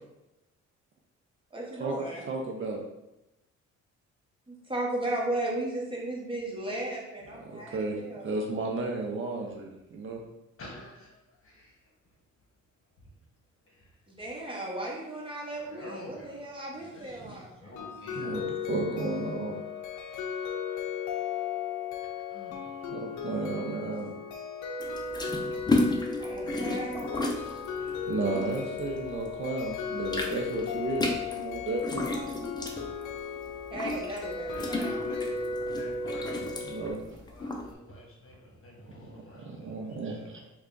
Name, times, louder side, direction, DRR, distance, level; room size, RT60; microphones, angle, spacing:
voice 1, 1.5-2.2 4.5-8.3 14.2-17.8 24.0-24.1 26.2-27.5 33.7-35.1, right 1 dB, 15° right, -3 dB, 1.1 m, -35 dB
voice 2, 2.3-2.8 7.3-10.2 17.2-17.4 18.1-18.4 18.7-19.6 22.9-24.1 28.1-32.1 36.7-37.0 39.4-40.4, right 3 dB, 45° right, 1 dB, 0.5 m, -33 dB
voice 3, 10.6-11.9 13.0-13.1 13.7-14.0 15.5-18.5 22.0-23.3 25.6-28.1 29.2-29.3 32.8-33.0 33.3-33.4 34.5-36.5 36.8-40.5, left 1 dB, 45° left, -2 dB, 1.1 m, -48 dB
sound 1, 17.8-36.9, left 5 dB, 80° left, 0.5 m, -36 dB
sound 2, 24.8-29.3 29.6-37.7, left 2 dB, 15° left, 0.5 m, -33 dB
3.4 x 2.3 x 3.7 m, 0.91 s
cardioid pair, 90°, 30 cm